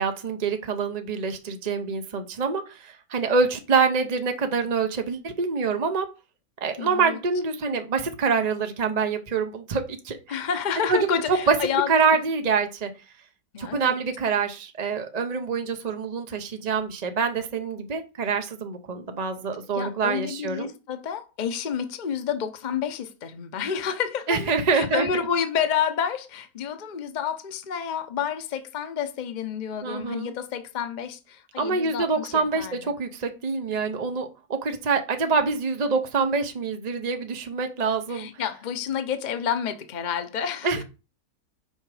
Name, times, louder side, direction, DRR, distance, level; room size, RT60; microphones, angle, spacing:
voice 1, 0.0-6.1 6.6-10.4 10.9-11.1 11.5-11.6 11.9-12.9 13.6-20.7 24.3-25.1 29.8-30.3 31.6-38.3 40.6-40.8, right 5 dB, 40° right, 0.6 m, -26 dB
voice 2, 6.8-7.2 10.3-11.9 13.5-13.9 19.7-33.0 38.1-40.8, left 7 dB, 40° left, 0.7 m, -29 dB
6.4 x 5.0 x 4.9 m
omnidirectional pair, 1.7 m